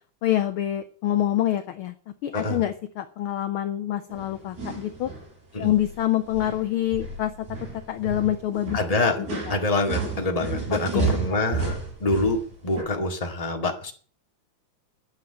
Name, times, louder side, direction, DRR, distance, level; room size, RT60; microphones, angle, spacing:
voice 1, 0.2-1.9 2.2-5.1 5.6-7.3 7.9-8.8 9.2-9.3 10.7-11.1, left 12 dB, 70° left, 9 dB, 1.3 m, -26 dB
voice 2, 2.3-2.6 5.5-5.7 8.7-9.2 9.5-13.9, left 2 dB, 15° left, 2 dB, 1.8 m, -26 dB
sound 1, 4.1-5.3 5.6-6.0 6.3-12.8, right 4 dB, 85° right, 7.3 m, -32 dB
11.0 x 7.5 x 8.8 m, 0.43 s
omnidirectional pair, 3.3 m